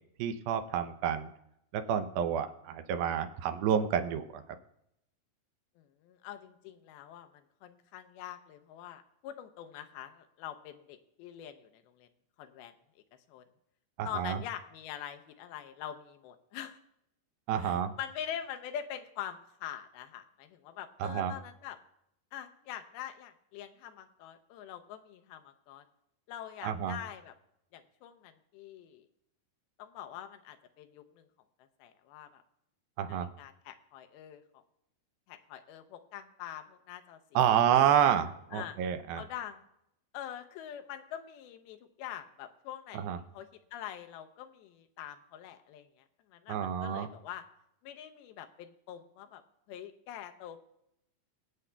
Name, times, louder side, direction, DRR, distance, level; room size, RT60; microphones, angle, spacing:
voice 1, 0.2-1.3 1.7-4.4 14.0-14.4 17.5-17.9 21.0-21.3 26.6-27.0 33.0-33.3 37.4-39.2 42.9-43.2 46.5-47.1, right 9 dB, 80° right, 8 dB, 2.5 m, -29 dB
voice 2, 5.8-12.1 12.4-13.0 13.3-13.4 14.0-16.8 17.6-21.8 22.3-25.8 26.3-27.3 27.7-29.1 29.8-31.3 31.8-32.4 33.1-34.6 35.3-37.2 37.5-37.6 38.5-38.8 39.2-39.6 40.1-47.4 47.8-49.4 49.7-50.6, left 10 dB, 85° left, 7 dB, 2.6 m, -44 dB
23.0 x 8.3 x 2.2 m, 0.79 s
omnidirectional pair, 4.3 m